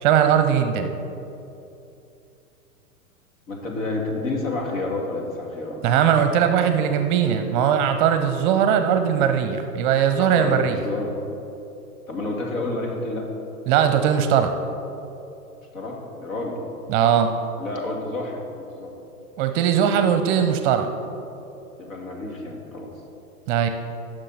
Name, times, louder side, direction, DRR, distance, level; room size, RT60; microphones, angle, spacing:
voice 1, 0.0-0.9 5.8-10.8 13.7-14.5 16.9-17.3 19.4-20.9 23.5-23.7, right 8 dB, 35° right, 8 dB, 0.7 m, -19 dB
voice 2, 3.5-6.4 10.2-11.1 12.1-13.3 15.7-16.6 17.6-18.9 21.8-22.9, left 2 dB, 60° left, 0 dB, 2.5 m, -30 dB
16.5 x 6.4 x 4.2 m, 2.8 s
hypercardioid pair, 115°, 44 cm